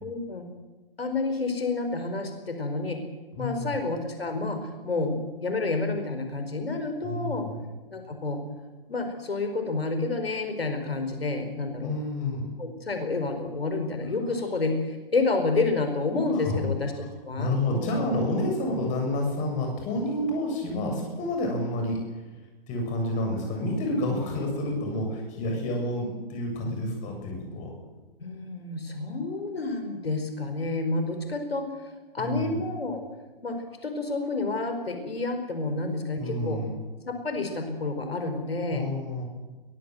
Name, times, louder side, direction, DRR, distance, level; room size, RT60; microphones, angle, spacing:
voice 1, 0.0-0.5 1.0-3.0 3.4-7.5 7.9-8.4 8.9-11.9 12.6-16.9 17.2-18.0 21.5-21.6 28.2-31.7 32.1-33.0 33.4-36.6 37.0-38.8, left 3 dB, 90° left, 6 dB, 4.8 m, -29 dB
voice 2, 3.4-3.8 7.0-7.6 11.8-12.5 16.3-16.7 17.4-22.0 22.7-27.7 32.2-32.6 36.2-36.8 38.7-39.2, left 1 dB, 25° left, 2 dB, 7.4 m, -29 dB
22.5 x 18.0 x 7.8 m, 1.2 s
hypercardioid pair, 140°, 29 cm